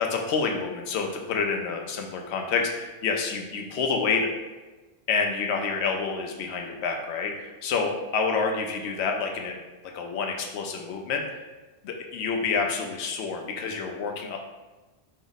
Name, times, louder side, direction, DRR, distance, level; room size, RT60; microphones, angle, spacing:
voice 1, 0.0-4.3 5.1-9.6 9.9-11.2 11.8-14.4, left 5 dB, 75° left, 2 dB, 0.8 m, -28 dB
4.3 x 2.0 x 3.8 m, 1.2 s
omnidirectional pair, 1.2 m